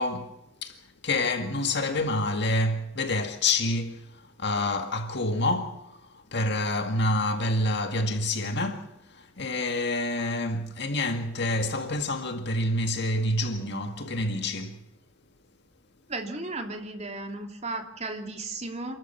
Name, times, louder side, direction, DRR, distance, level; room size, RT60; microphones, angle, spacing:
voice 1, 0.0-14.8, left 2 dB, 60° left, 2.0 m, -28 dB
voice 2, 16.1-19.0, right 2 dB, 35° right, 3.0 m, -35 dB
28.5 x 13.5 x 7.2 m
head